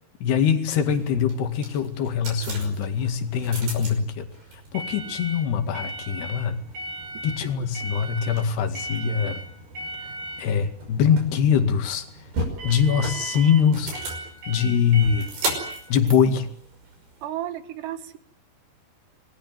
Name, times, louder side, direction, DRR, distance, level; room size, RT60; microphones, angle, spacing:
voice 1, 0.2-4.3 4.7-6.6 7.2-9.4 10.4-12.1 12.6-13.9 14.5-15.3 15.9-16.5, left 7 dB, 75° left, 7 dB, 4.2 m, -23 dB
sound 1, 0.8-17.2, right 2 dB, 65° right, 7.6 m, -35 dB
voice 2, 17.2-18.2, right 12 dB, 80° right, 11 dB, 3.7 m, -33 dB
26.5 x 21.0 x 9.1 m, 0.62 s
omnidirectional pair, 4.8 m